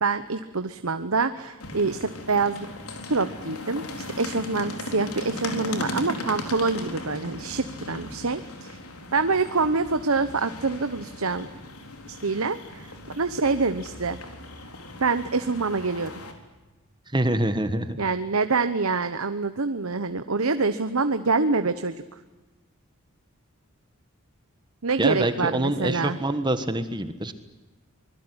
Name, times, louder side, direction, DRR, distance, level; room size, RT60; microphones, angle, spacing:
voice 1, 0.0-2.7 3.1-8.8 9.1-11.5 12.1-14.2 15.0-16.1 18.0-21.9 24.8-26.2, right 4 dB, 70° right, 10 dB, 1.1 m, -26 dB
sound 1, 1.6-16.3, left 2 dB, 85° left, 4.0 m, -37 dB
voice 2, 17.1-18.0 25.0-27.3, right 1 dB, 20° right, 10 dB, 1.5 m, -25 dB
25.0 x 21.0 x 9.8 m, 1.1 s
head